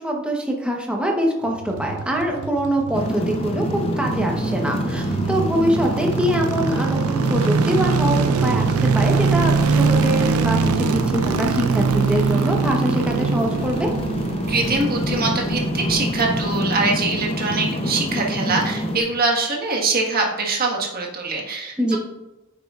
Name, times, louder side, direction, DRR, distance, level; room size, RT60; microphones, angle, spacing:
voice 1, 0.0-13.9 21.8-22.0, equal, 5° right, 0 dB, 1.0 m, -24 dB
sound 1, 1.5-16.7 16.9-17.0, right 5 dB, 85° right, 0.5 m, -23 dB
sound 2, 2.9-19.0, equal, 30° left, 0.7 m, -26 dB
voice 2, 14.5-21.8, right 3 dB, 45° right, -1 dB, 1.6 m, -23 dB
9.8 x 6.4 x 2.5 m, 1.0 s
head